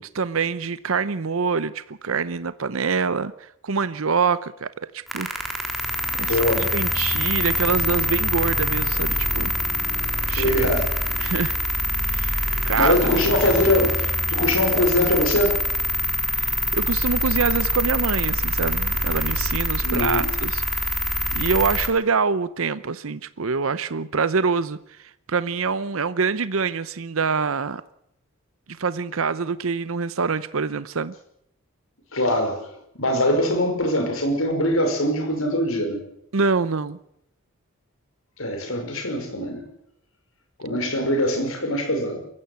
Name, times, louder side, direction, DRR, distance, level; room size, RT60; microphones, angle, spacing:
voice 1, 0.1-4.7 4.9-5.3 6.1-9.5 10.3-10.5 11.2-11.6 12.0-12.9 16.3-20.9 21.3-27.8 28.7-31.1 36.3-37.0, right 5 dB, 70° right, 15 dB, 0.7 m, -25 dB
sound 1, 5.1-21.9, left 1 dB, ahead, 3.6 m, -24 dB
voice 2, 6.2-6.7 10.4-10.9 12.6-15.6 19.8-20.3 32.1-32.7 33.0-36.0 38.4-39.6 40.6-42.2, left 1 dB, 70° left, 5 dB, 5.6 m, -22 dB
22.5 x 15.5 x 8.2 m, 0.76 s
head